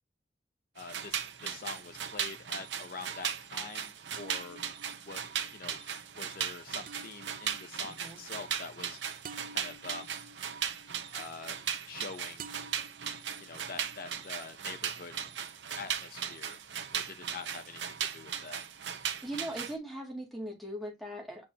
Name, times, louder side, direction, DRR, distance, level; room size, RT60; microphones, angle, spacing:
voice 1, 0.7-4.6 5.1-5.2 5.5-5.8 6.2-9.0 9.5-10.1 11.1-11.6 11.9-12.5 13.4-15.1 15.8-16.6 16.9-18.6, left 4 dB, 50° left, 0.7 m, -45 dB
sound 1, 0.8-19.7, right 8 dB, 75° right, 0.9 m, -38 dB
sound 2, 2.1-2.5 4.1-12.1 12.4-14.5, right 3 dB, 50° right, 0.6 m, -53 dB
voice 2, 7.8-8.2 19.2-21.5, right 1 dB, ahead, 2.3 m, -40 dB
8.5 x 4.4 x 2.9 m
head